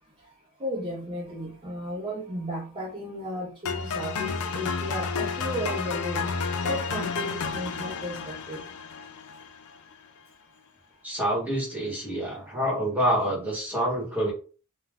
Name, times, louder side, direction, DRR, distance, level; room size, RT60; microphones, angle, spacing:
voice 1, 0.6-6.3 6.6-8.6, equal, 25° right, -5 dB, 0.6 m, -34 dB
sound 1, 3.7-9.8, left 5 dB, 75° left, 0.4 m, -31 dB
voice 2, 11.0-14.3, equal, 10° right, -4 dB, 1.2 m, -27 dB
2.4 x 2.2 x 3.3 m, 0.36 s
head